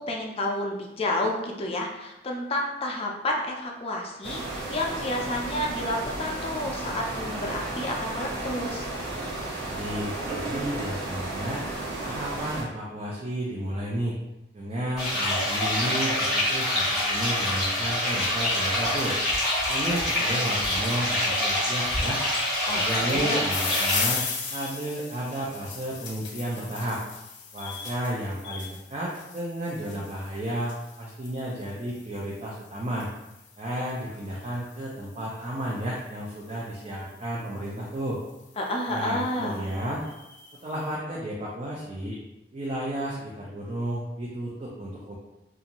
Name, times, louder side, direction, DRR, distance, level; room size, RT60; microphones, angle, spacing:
voice 1, 0.0-8.9 22.7-23.4 38.6-39.6, left 1 dB, 35° left, 0 dB, 0.4 m, -30 dB
sound 1, 4.2-12.6, right 2 dB, 75° right, 0.8 m, -33 dB
voice 2, 9.6-11.6 12.0-14.2 14.5-19.2 19.7-22.2 22.7-24.2 24.5-27.0 27.5-33.1 33.6-38.2 38.9-40.0 40.6-42.2 42.5-45.2, right 1 dB, 35° right, -5 dB, 0.4 m, -32 dB
sound 2, 15.0-24.0, left 1 dB, 5° right, 1.0 m, -26 dB
sound 3, 23.5-36.7 37.6-38.0 38.6-38.7 38.9-39.0 39.3-40.6, left 5 dB, 90° left, 0.5 m, -37 dB
2.6 x 2.4 x 2.9 m, 0.94 s
head